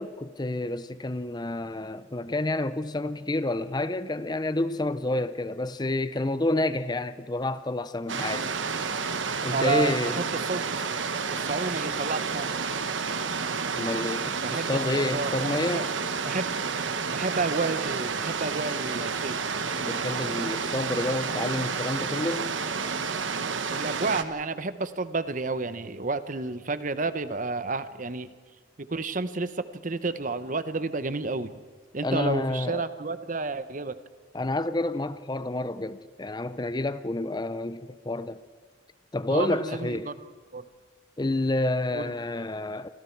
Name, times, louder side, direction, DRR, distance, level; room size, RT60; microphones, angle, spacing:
voice 1, 0.0-8.5 9.4-10.2 13.7-15.9 19.7-22.5 32.0-32.8 34.3-38.4 39.1-40.1 41.2-42.9, left 2 dB, 20° left, 0.6 m, -29 dB
sound 1, 8.1-24.2, right 5 dB, 70° right, 1.2 m, -30 dB
voice 2, 9.5-10.7 11.3-12.5 14.4-15.8 16.3-16.5 17.1-19.4 23.7-28.3 28.8-31.5 31.9-34.0 39.3-40.1 40.5-40.6 41.9-42.1, right 3 dB, 40° right, 0.9 m, -31 dB
28.5 x 25.5 x 4.6 m
head